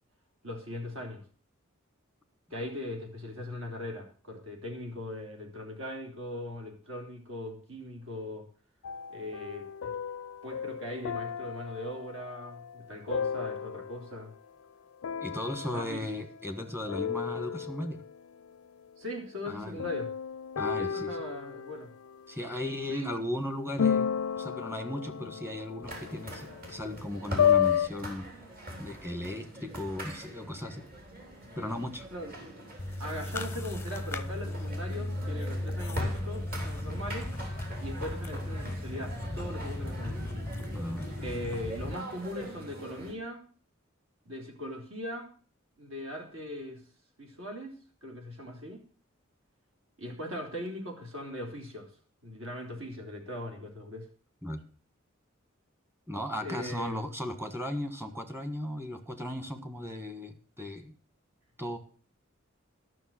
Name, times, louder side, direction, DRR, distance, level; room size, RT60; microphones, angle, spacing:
voice 1, 0.4-1.2 2.5-8.5 9.1-9.9 10.4-14.3 15.7-16.1 19.0-20.1 20.8-21.9 22.9-23.2 32.1-32.3 33.0-37.3 37.8-40.3 41.2-43.4 44.3-45.3 45.8-46.8 47.2-47.7 48.0-48.8 50.0-51.9 52.2-54.1 56.4-57.1, left 1 dB, 70° right, 2 dB, 3.5 m, -39 dB
sound 1, 8.8-14.3 15.0-16.6 16.9-18.2 19.8-22.8 23.8-27.9, left 8 dB, 85° left, 0.4 m, -32 dB
voice 2, 15.2-18.0 19.5-19.8 20.6-21.1 22.3-24.1 24.4-28.3 28.8-30.8 31.6-32.1 40.7-41.1 54.4-54.6 56.1-60.9 61.6-61.8, left 1 dB, 10° right, 8 dB, 1.4 m, -36 dB
sound 2, 25.8-43.1, equal, 45° right, 3.7 m, -43 dB
sound 3, 32.8-41.9, left 1 dB, 10° left, 0.6 m, -36 dB
12.5 x 6.3 x 7.5 m, 0.41 s
head